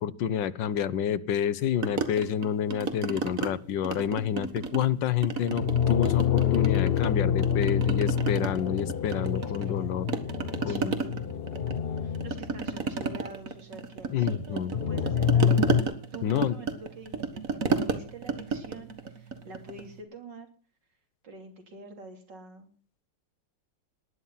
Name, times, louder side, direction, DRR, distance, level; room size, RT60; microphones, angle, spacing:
voice 1, 0.0-10.1 10.6-10.9 14.1-14.7 16.2-16.5, left 9 dB, 80° left, 16 dB, 1.6 m, -28 dB
sound 1, 1.8-3.5 3.8-4.9 5.2-7.1 7.4-9.8 10.1-19.9, right 5 dB, 50° right, 2.0 m, -32 dB
sound 2, 5.4-12.7 14.7-15.8, left 8 dB, 50° left, 0.7 m, -27 dB
voice 2, 9.3-10.0 10.7-11.2 11.8-15.7 16.1-20.5 21.2-22.7, right 3 dB, 70° right, 5 dB, 3.9 m, -46 dB
19.5 x 11.0 x 5.7 m, 0.41 s
omnidirectional pair, 2.0 m